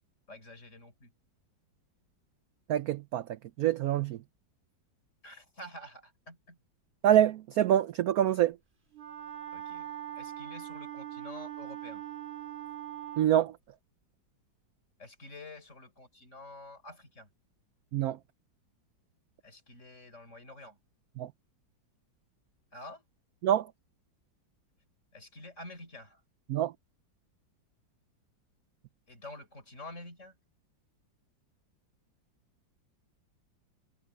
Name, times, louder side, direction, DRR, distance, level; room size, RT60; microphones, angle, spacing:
voice 1, 0.3-1.1 5.2-6.6 9.5-12.0 15.0-17.3 19.4-20.8 22.7-23.0 25.1-26.2 29.1-30.4, left 1 dB, 35° left, 4.8 m, -48 dB
voice 2, 2.7-3.2 3.6-4.2 7.0-8.5 13.2-13.5 17.9-18.2 21.2-21.3 23.4-23.7 26.5-26.7, right 11 dB, 75° right, 0.8 m, -25 dB
Wind instrument woodwind instrument, 8.9-13.3, right 11 dB, 35° right, 2.4 m, -41 dB
omnidirectional pair, 2.1 m